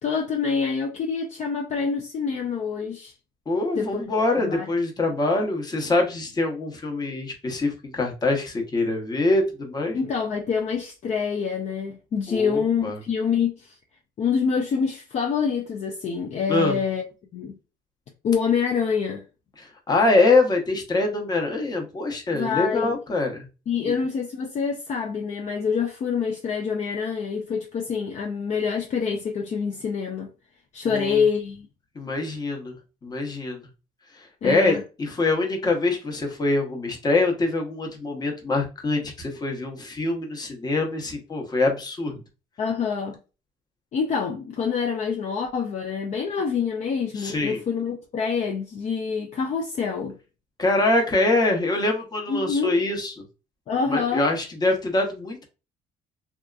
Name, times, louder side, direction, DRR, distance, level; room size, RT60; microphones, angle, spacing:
voice 1, 0.0-3.1 3.7-4.1 4.3-4.7 9.9-13.8 14.2-17.0 17.3-17.6 18.2-19.2 22.3-23.0 23.7-30.3 30.7-31.7 34.4-34.8 42.6-43.2 43.9-50.1 52.3-52.8 53.7-54.3, left 6 dB, 45° left, 0.4 m, -26 dB
voice 2, 3.5-10.0 12.3-13.0 16.5-16.8 19.6-23.5 23.8-24.0 30.8-31.2 31.9-32.7 33.0-33.6 34.1-42.2 47.1-47.6 50.6-53.1 53.9-55.5, left 2 dB, 25° left, 0.8 m, -24 dB
2.7 x 2.3 x 2.3 m
cardioid pair, 110°, 17 cm